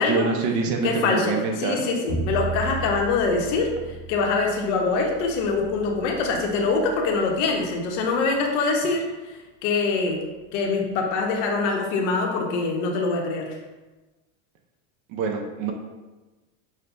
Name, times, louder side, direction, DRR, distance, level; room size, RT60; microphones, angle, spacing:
voice 1, 0.0-1.8 15.1-15.7, right 4 dB, 50° right, 2 dB, 0.6 m, -25 dB
voice 2, 0.8-3.7 4.1-10.2 10.5-13.5, left 4 dB, 70° left, 1 dB, 0.9 m, -24 dB
Bowed string instrument, 2.1-8.3, right 3 dB, ahead, 0.8 m, -36 dB
6.3 x 2.1 x 2.5 m, 1.2 s
supercardioid pair, 140°, 38 cm